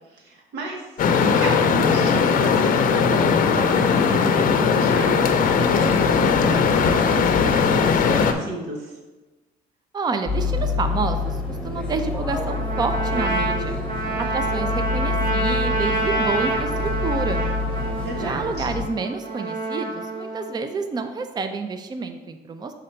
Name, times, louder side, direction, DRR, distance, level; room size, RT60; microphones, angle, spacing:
voice 1, 0.1-1.0 1.3-5.2 5.6-9.0 17.9-18.6, right 1 dB, 75° right, 1 dB, 1.1 m, -33 dB
sound 1, 1.0-8.3, left 5 dB, 55° left, 0.6 m, -19 dB
voice 2, 9.9-13.8 14.2-17.5 18.2-22.7, right 4 dB, 25° right, 8 dB, 0.5 m, -29 dB
sound 2, 10.3-18.8, left 4 dB, 5° left, 1.0 m, -27 dB
Trumpet, 12.5-20.5, right 2 dB, 60° right, 1.8 m, -27 dB
6.3 x 3.8 x 4.4 m, 1.2 s
cardioid pair, 110°, 17 cm